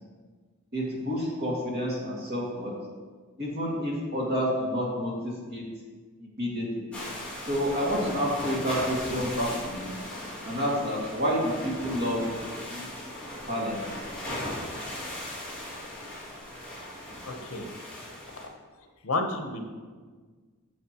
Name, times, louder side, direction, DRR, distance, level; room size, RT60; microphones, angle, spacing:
voice 1, 0.7-2.7 3.4-5.7 6.2-6.9 7.5-10.0 10.5-12.2 12.6-13.1 13.5-13.8, equal, 50° right, -4 dB, 2.0 m, -29 dB
sound 1, 6.9-18.4, left 1 dB, 5° left, 2.2 m, -38 dB
voice 2, 17.3-17.7 19.0-19.6, left 2 dB, 70° left, 4 dB, 0.9 m, -30 dB
9.2 x 7.1 x 3.0 m, 1.5 s
head